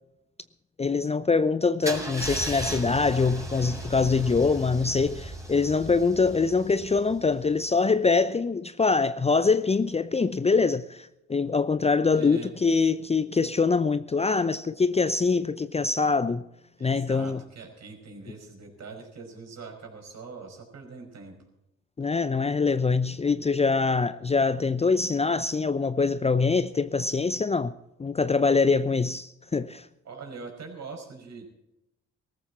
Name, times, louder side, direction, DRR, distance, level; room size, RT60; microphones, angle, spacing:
voice 1, 0.8-16.4 16.8-17.4 22.0-27.7 28.0-29.9, left 4 dB, 20° left, 0.7 m, -24 dB
Car / Engine starting / Idling, 1.8-7.7, right 1 dB, 10° right, 4.4 m, -37 dB
voice 2, 12.1-12.5 16.8-21.4 30.1-31.4, right 4 dB, 50° right, 5.3 m, -42 dB
18.5 x 14.5 x 4.2 m
hypercardioid pair, 50°, 34 cm